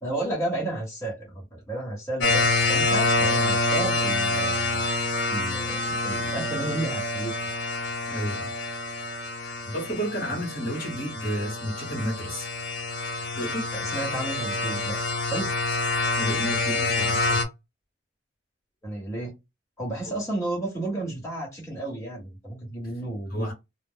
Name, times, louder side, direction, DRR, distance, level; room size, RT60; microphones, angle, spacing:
voice 1, 0.0-4.9 5.3-7.4 10.2-10.4 13.7-15.0 15.3-15.5 18.8-19.3 19.8-23.5, right 1 dB, 15° left, 1.3 m, -32 dB
sound 1, 2.2-17.4, left 2 dB, 65° left, 0.7 m, -27 dB
voice 2, 8.1-8.5 9.4-12.5 13.3-13.7 16.2-17.4 20.0-20.2 23.3-23.5, equal, 45° left, 1.1 m, -31 dB
2.3 x 2.0 x 3.8 m
head